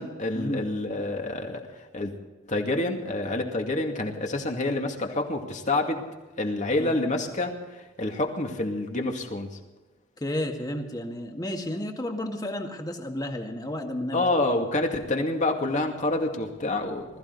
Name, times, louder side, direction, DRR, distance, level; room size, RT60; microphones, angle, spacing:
voice 1, 0.0-2.1 2.5-6.0 6.4-9.6 14.1-17.1, left 2 dB, 40° left, 3 dB, 2.3 m, -28 dB
voice 2, 10.2-14.2, left 1 dB, 20° left, 3 dB, 1.9 m, -32 dB
21.0 x 14.5 x 4.1 m, 1.2 s
head